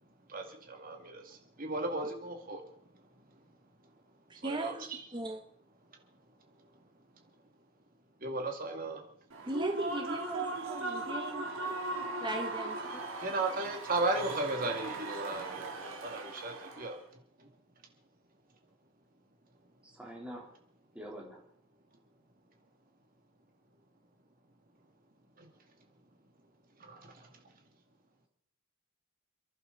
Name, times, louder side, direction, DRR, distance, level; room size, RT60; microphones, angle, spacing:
voice 1, 0.3-2.7 4.4-5.0 8.2-9.0 13.2-17.0 17.4-17.5 25.4-25.5 26.8-27.3, right 2 dB, 40° right, 3 dB, 2.3 m, -36 dB
voice 2, 4.4-4.9 5.1-5.4 9.4-11.5 12.2-13.0, right 2 dB, 20° right, 4 dB, 1.1 m, -37 dB
Human voice / Cheering / Applause, 9.3-17.0, right 2 dB, 65° right, 2.4 m, -38 dB
voice 3, 19.8-20.5 20.9-21.4, equal, 5° right, -2 dB, 3.5 m, -45 dB
29.5 x 11.0 x 4.0 m, 0.65 s
head